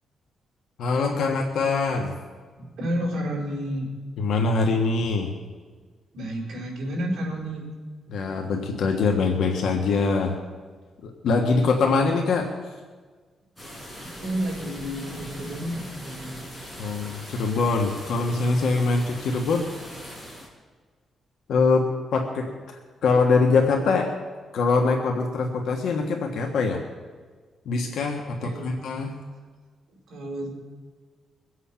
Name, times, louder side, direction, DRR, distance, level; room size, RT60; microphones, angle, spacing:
voice 1, 0.8-2.1 4.2-5.3 8.1-10.4 11.0-12.7 16.8-19.7 21.5-22.5 23.0-24.1 24.5-26.8 27.6-29.2, left 4 dB, 75° left, 2 dB, 1.4 m, -23 dB
voice 2, 2.6-3.9 6.1-7.6 14.0-16.4 28.4-28.8 30.1-30.5, equal, 60° right, -2 dB, 4.7 m, -31 dB
sound 1, 13.6-20.5, equal, 5° left, 3.9 m, -41 dB
22.5 x 8.2 x 5.7 m, 1.5 s
wide cardioid pair, 170°, 0 cm